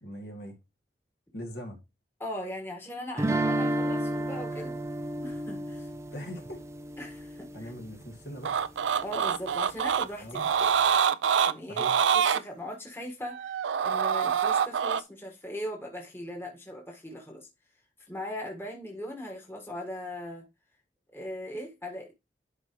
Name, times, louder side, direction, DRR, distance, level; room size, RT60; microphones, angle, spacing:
voice 1, 0.0-0.6 1.3-1.8 6.1-6.6 7.5-8.6 10.2-10.4 11.7-12.0, equal, 65° left, 2.2 m, -41 dB
voice 2, 2.2-4.8 5.2-5.9 7.0-7.7 9.0-10.7 11.3-11.8 12.1-17.5 18.1-20.5 21.1-22.1, left 1 dB, 15° left, 1.5 m, -39 dB
sound 1, 3.2-8.1, right 1 dB, 15° right, 0.4 m, -32 dB
sound 2, 8.4-10.1 10.3-12.4 13.2-15.0, right 7 dB, 90° right, 0.4 m, -25 dB
11.0 x 4.5 x 3.1 m
head